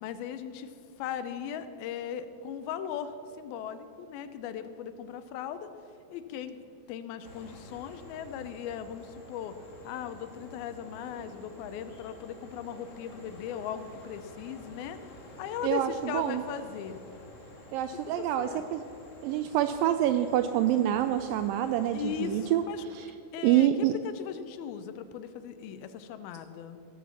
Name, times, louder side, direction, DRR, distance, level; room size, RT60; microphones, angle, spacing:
voice 1, 0.0-5.7 6.1-9.5 9.8-15.0 15.4-17.0 18.1-18.7 21.9-22.8 23.3-26.8, left 8 dB, 80° left, 11 dB, 2.5 m, -38 dB
sound 1, 7.2-22.6, left 1 dB, 55° left, 0.8 m, -50 dB
voice 2, 15.6-16.4 17.7-18.8 19.2-22.6 23.0-23.1 23.4-23.9, right 12 dB, 85° right, 9 dB, 2.0 m, -26 dB
17.5 x 7.5 x 7.2 m, 2.7 s
omnidirectional pair, 4.5 m